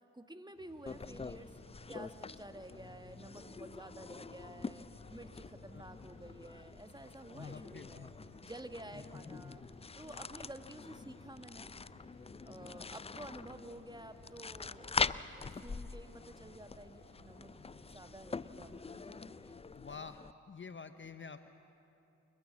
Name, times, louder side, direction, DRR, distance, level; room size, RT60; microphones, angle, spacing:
voice 1, 0.0-1.6 1.9-8.1 8.4-9.6 9.9-11.7 12.4-17.5 17.9-19.6, right 1 dB, 10° right, 8 dB, 1.5 m, -51 dB
sound 1, 0.5-19.5, right 2 dB, 55° right, 4.7 m, -62 dB
sound 2, 0.9-20.3, left 4 dB, 15° left, 0.4 m, -44 dB
voice 2, 7.3-8.1 19.7-20.2 20.5-21.5, left 5 dB, 30° left, 11 dB, 0.8 m, -48 dB
29.0 x 13.0 x 7.3 m, 2.9 s
hypercardioid pair, 40°, 37 cm